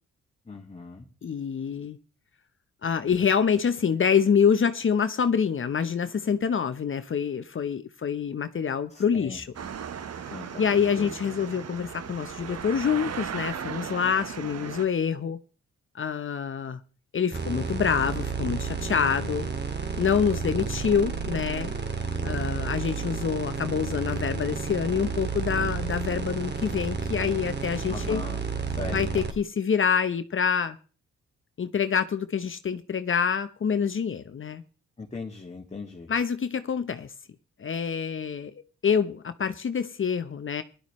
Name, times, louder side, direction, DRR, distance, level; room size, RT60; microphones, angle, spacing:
voice 1, 0.5-1.1 8.9-9.4 10.3-11.1 27.9-28.4 28.8-29.2 35.0-36.1, left 3 dB, 20° left, 2.0 m, -39 dB
voice 2, 1.2-2.0 2.8-9.5 10.6-15.4 15.9-16.8 17.1-19.5 20.0-21.7 22.2-28.2 28.9-30.8 31.6-34.6 36.1-37.1 37.6-38.5 38.8-40.6, left 7 dB, 40° left, 0.9 m, -26 dB
sound 1, 9.5-14.9, right 7 dB, 55° right, 1.2 m, -37 dB
sound 2, 17.3-29.3, right 5 dB, 35° right, 2.3 m, -31 dB
17.0 x 11.5 x 3.1 m
supercardioid pair, 60°, 30 cm